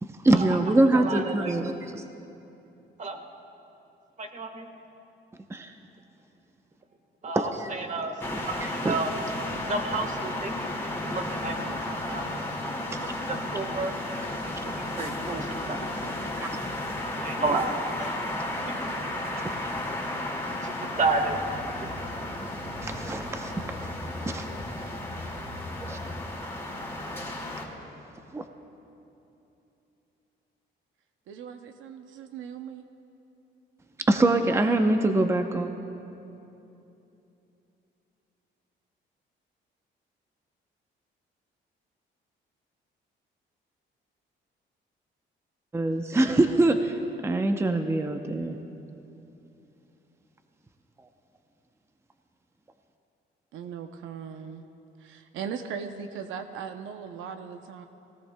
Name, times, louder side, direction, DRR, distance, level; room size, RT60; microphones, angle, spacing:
voice 1, 0.0-2.0 5.5-5.7 7.4-7.7 8.3-9.0 12.9-13.0 16.4-16.5 22.8-23.5 23.8-23.9 24.2-24.5 25.9-26.0 27.2-27.3 28.3-28.4 34.1-35.7 45.7-47.0 47.2-48.6, right 2 dB, 15° right, 6 dB, 0.6 m, -24 dB
voice 2, 0.8-1.5 3.0-3.2 4.2-4.7 7.2-9.1 9.7-12.7 13.0-16.2 17.2-17.7 18.0-18.1 18.7-18.8 20.6-21.4 21.8-21.9 24.2-24.5 24.8-24.9, right 3 dB, 35° right, 5 dB, 1.4 m, -32 dB
sound 1, 8.2-27.7, left 1 dB, 15° left, 2.1 m, -34 dB
sound 2, 20.9-26.6, left 1 dB, 55° right, 3.4 m, -42 dB
voice 3, 31.3-32.8 53.5-54.6 55.0-57.9, right 7 dB, 85° right, 7 dB, 0.6 m, -38 dB
19.0 x 17.5 x 2.2 m, 2.9 s
cardioid pair, 90°, 20 cm